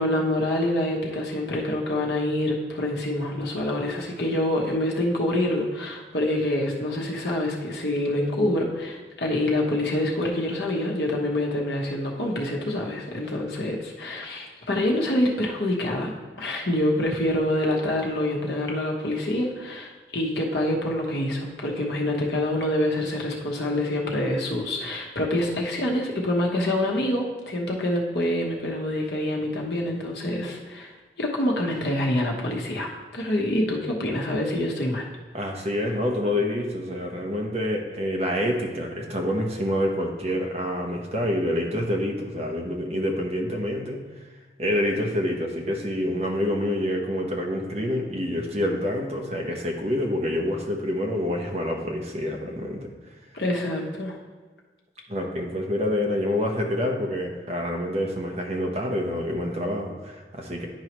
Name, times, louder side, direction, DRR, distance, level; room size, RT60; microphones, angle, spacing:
voice 1, 0.0-16.1 16.4-30.9 31.2-35.1 53.3-54.2, left 1 dB, 75° left, -1 dB, 1.1 m, -26 dB
voice 2, 35.3-44.0 44.6-52.9 55.1-60.7, left 1 dB, 35° right, 1 dB, 0.9 m, -27 dB
10.5 x 4.7 x 3.0 m, 1.3 s
head